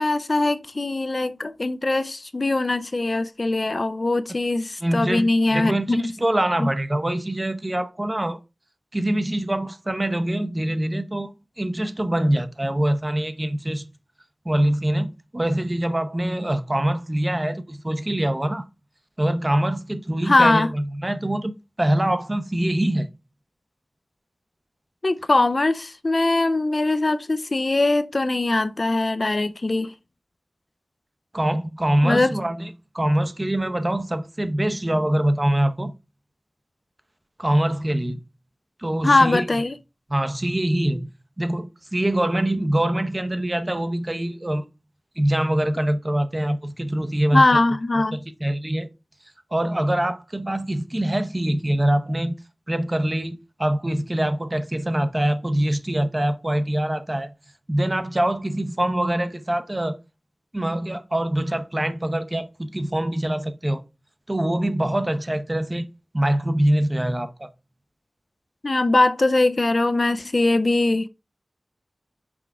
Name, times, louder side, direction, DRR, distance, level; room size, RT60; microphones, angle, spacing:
voice 1, 0.0-6.1 6.6-6.7 20.3-20.7 25.0-29.9 32.0-32.3 39.0-39.7 47.3-48.2 68.6-71.1, left 2 dB, 45° left, 0.4 m, -21 dB
voice 2, 4.8-8.4 8.9-13.8 14.4-18.7 19.2-23.1 31.3-35.9 37.4-38.2 38.8-39.5 40.1-41.1 41.4-44.6 45.2-47.6 48.1-48.9 49.5-52.4 52.7-57.3 57.7-60.0 60.5-63.8 64.3-65.9 66.1-67.5, right 1 dB, 25° right, 0.7 m, -24 dB
6.1 x 4.6 x 3.4 m
wide cardioid pair, 70°, 0 cm